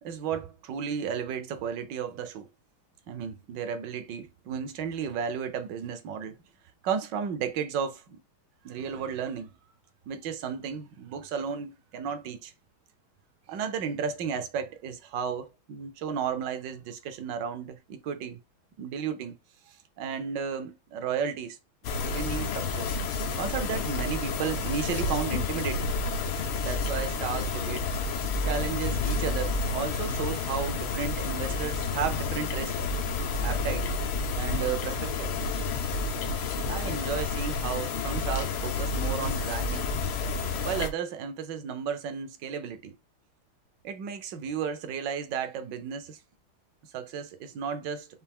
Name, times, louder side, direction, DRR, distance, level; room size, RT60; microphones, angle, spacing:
voice 1, 0.0-2.5 3.1-6.4 6.8-8.2 8.6-9.5 10.1-12.5 13.5-18.4 18.8-19.4 19.7-21.6 21.9-22.9 23.4-25.9 26.6-27.9 28.4-32.9 33.4-33.9 34.4-35.3 36.7-39.9 40.6-43.0 43.8-46.2 46.9-48.1, right 7 dB, 65° right, 1.3 m, -33 dB
sound 1, 21.8-40.9, left 3 dB, 85° left, 1.8 m, -30 dB
5.6 x 2.7 x 3.5 m
omnidirectional pair, 2.3 m